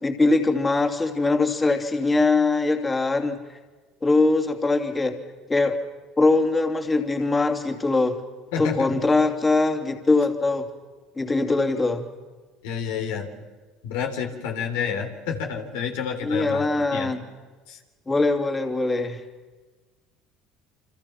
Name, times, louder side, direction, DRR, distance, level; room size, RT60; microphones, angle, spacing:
voice 1, 0.0-3.4 4.0-5.2 5.5-5.8 6.2-8.2 8.6-10.7 11.2-12.0 16.2-17.2 18.1-19.2, left 3 dB, 20° left, 4 dB, 2.9 m, -22 dB
voice 2, 8.5-9.0 12.6-13.3 13.8-17.1 17.7-17.8, left 7 dB, 80° left, 3 dB, 3.4 m, -29 dB
29.0 x 25.5 x 5.9 m, 1.3 s
supercardioid pair, 80°, 0 cm